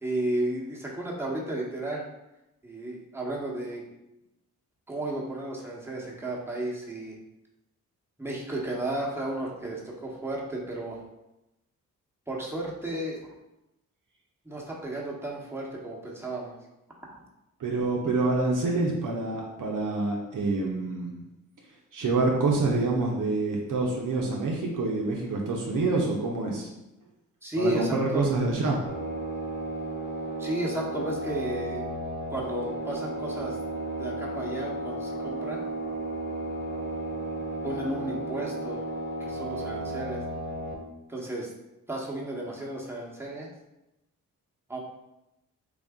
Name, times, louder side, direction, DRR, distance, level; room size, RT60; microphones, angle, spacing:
voice 1, 0.0-2.0 2.6-3.8 4.9-7.2 8.2-11.0 12.3-13.2 14.4-16.5 17.0-17.2 27.4-28.3 30.4-31.8 32.3-33.6 34.0-35.6 37.6-38.8 39.2-40.2 41.1-41.5 41.9-43.5 44.7-44.8, right 1 dB, 5° right, -3 dB, 1.1 m, -33 dB
voice 2, 17.6-21.2 21.9-26.7 27.6-28.8, right 3 dB, 60° right, -1 dB, 0.8 m, -27 dB
sound 1, 28.9-40.7, right 1 dB, 30° left, 1.0 m, -34 dB
3.4 x 2.5 x 3.6 m, 0.91 s
supercardioid pair, 45°, 36 cm